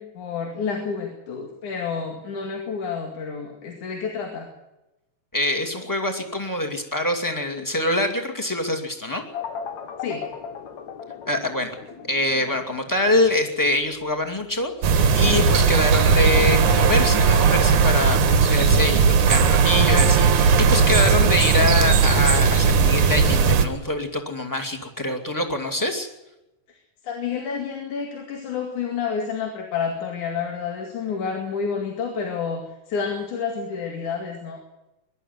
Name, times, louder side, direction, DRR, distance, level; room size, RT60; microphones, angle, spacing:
voice 1, 0.0-4.5 10.0-10.2 26.7-26.8 27.0-34.6, left 6 dB, 85° left, 3 dB, 3.7 m, -29 dB
voice 2, 5.3-9.2 11.3-11.7 12.1-26.1, left 1 dB, 5° left, 3 dB, 2.0 m, -25 dB
sound 1, 9.3-17.8, left 7 dB, 70° left, 2.9 m, -38 dB
sound 2, 14.8-23.7, right 5 dB, 85° right, 3.0 m, -17 dB
22.5 x 12.5 x 9.4 m, 0.97 s
omnidirectional pair, 3.4 m